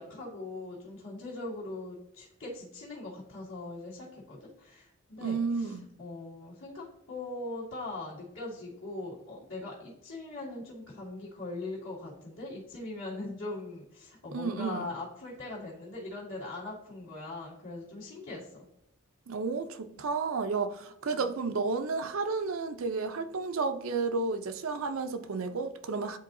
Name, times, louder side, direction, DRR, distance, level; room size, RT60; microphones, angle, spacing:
voice 1, 0.0-18.7 21.1-21.2, left 2 dB, 70° left, 2.0 m, -41 dB
voice 2, 5.2-5.8 14.3-14.9 19.3-26.2, right 4 dB, 75° right, 0.5 m, -32 dB
10.0 x 3.9 x 2.6 m
head